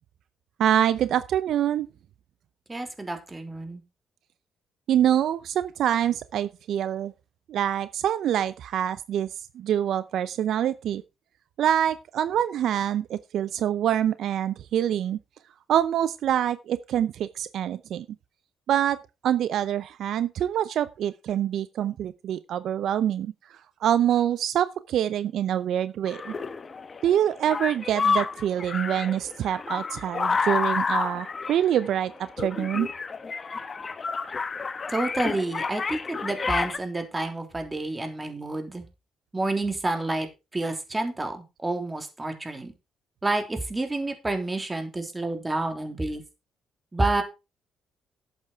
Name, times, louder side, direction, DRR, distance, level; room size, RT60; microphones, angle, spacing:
voice 1, 0.6-1.9 4.9-7.1 7.5-9.3 9.5-11.0 11.6-15.2 15.7-18.1 18.7-19.0 19.2-26.3 27.0-32.1 32.4-32.9, right 10 dB, 75° right, 0.6 m, -25 dB
voice 2, 2.7-3.8 34.9-38.8 39.3-40.3 40.5-42.7 43.2-46.2 46.9-47.2, right 2 dB, 20° right, 3.4 m, -29 dB
sound 1, 26.1-36.8, left 4 dB, 35° left, 1.3 m, -30 dB
11.5 x 8.2 x 4.6 m
cardioid pair, 90°, 0 cm